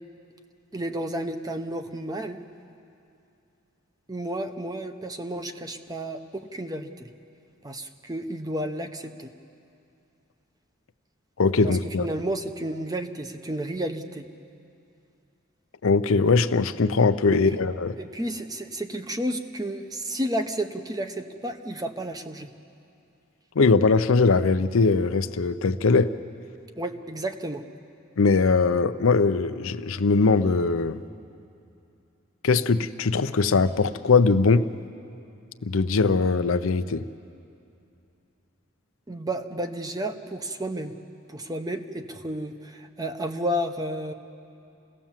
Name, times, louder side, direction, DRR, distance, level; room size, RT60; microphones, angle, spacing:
voice 1, 0.7-2.4 4.1-7.1 7.6-9.3 11.6-14.3 17.3-17.6 18.0-22.5 26.8-27.6 39.1-40.9 41.3-44.1, right 1 dB, 20° right, 7 dB, 0.8 m, -32 dB
voice 2, 11.4-12.1 15.8-18.0 23.6-26.1 28.2-31.0 32.4-34.7 35.6-37.0, left 4 dB, 80° left, 11 dB, 0.6 m, -21 dB
26.5 x 17.0 x 7.4 m, 2.6 s
head